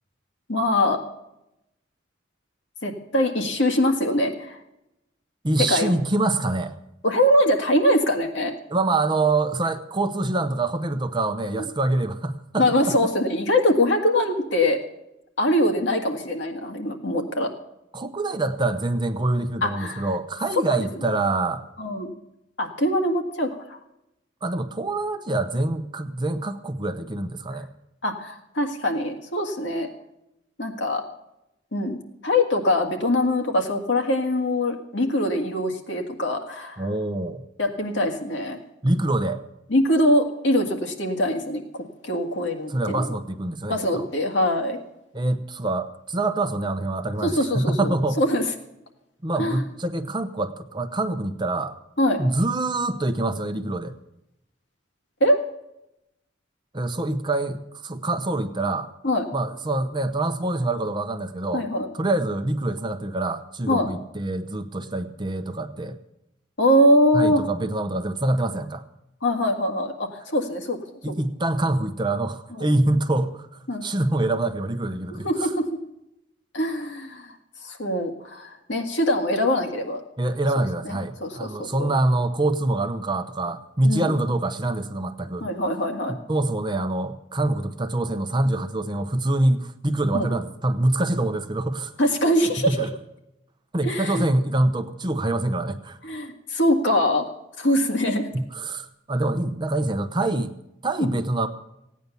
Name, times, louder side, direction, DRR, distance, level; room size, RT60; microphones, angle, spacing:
voice 1, 0.5-1.0 2.8-4.6 5.6-5.9 7.0-8.5 12.6-14.8 15.4-17.5 19.6-20.1 21.8-22.1 22.6-23.8 28.0-29.9 30.6-31.0 31.7-36.9 37.6-38.6 39.7-41.6 42.0-43.1 43.7-44.8 47.2-48.4 49.4-49.6 52.0-52.2 55.2-55.4 59.0-59.3 61.5-61.9 63.7-63.9 66.6-67.4 69.2-70.8 72.5-72.7 73.7-73.8 75.2-75.7 76.5-77.3 77.6-80.0 80.6-81.9 83.8-84.1 85.4-86.2 90.1-90.3 92.0-92.9 93.8-94.3 96.0-97.2 97.6-98.3 101.0-101.1, left 1 dB, 65° left, 3 dB, 1.8 m, -23 dB
voice 2, 5.4-6.7 8.7-12.7 17.9-21.6 24.4-27.7 36.8-37.4 38.8-39.4 42.7-44.0 45.1-48.2 49.2-51.7 52.2-53.9 56.7-58.9 59.3-61.7 61.9-66.0 67.1-68.8 71.0-73.5 73.8-75.5 80.2-85.5 86.1-91.9 92.7-92.9 93.7-96.0 98.3-100.5 100.8-101.5, right 2 dB, 25° right, 8 dB, 0.7 m, -25 dB
15.5 x 9.4 x 6.9 m, 0.86 s
head